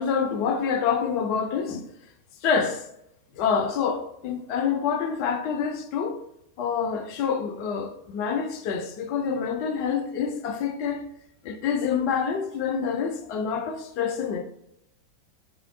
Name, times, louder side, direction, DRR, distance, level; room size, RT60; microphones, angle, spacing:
voice 1, 0.0-1.9 2.4-2.9 3.3-6.2 6.6-11.0 11.4-14.4, left 6 dB, 45° left, 0.4 m, -27 dB
3.1 x 2.5 x 2.7 m
figure-of-eight pair, 90°, 0 cm